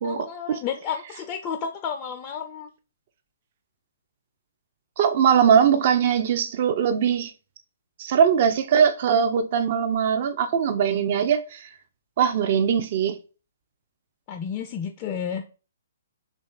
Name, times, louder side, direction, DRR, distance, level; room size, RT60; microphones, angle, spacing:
voice 1, 0.0-2.7 14.3-15.5, left 7 dB, 25° left, 0.3 m, -31 dB
voice 2, 5.0-7.3 8.0-11.7 12.2-13.2, right 7 dB, 40° right, 0.5 m, -21 dB
3.0 x 2.4 x 4.1 m
figure-of-eight pair, 125°, 0 cm